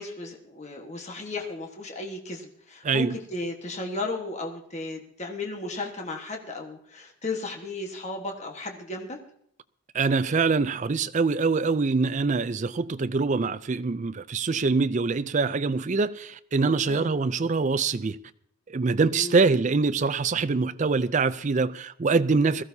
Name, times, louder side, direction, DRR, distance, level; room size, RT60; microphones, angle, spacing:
voice 1, 0.0-9.2 16.9-17.1 19.1-19.5, left 2 dB, 35° left, 1.4 m, -35 dB
voice 2, 2.8-3.2 9.9-18.2 18.7-22.6, right 4 dB, 35° right, 0.4 m, -24 dB
21.0 x 14.0 x 2.8 m
head